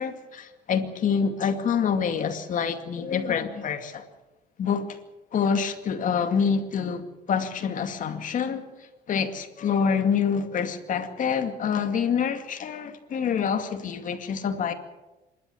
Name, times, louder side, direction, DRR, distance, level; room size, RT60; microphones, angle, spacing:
voice 1, 0.0-4.1 4.6-5.0 5.3-8.6 9.1-14.7, left 6 dB, 50° left, 2.4 m, -26 dB
26.5 x 12.5 x 8.6 m
cardioid pair, 110°, 17 cm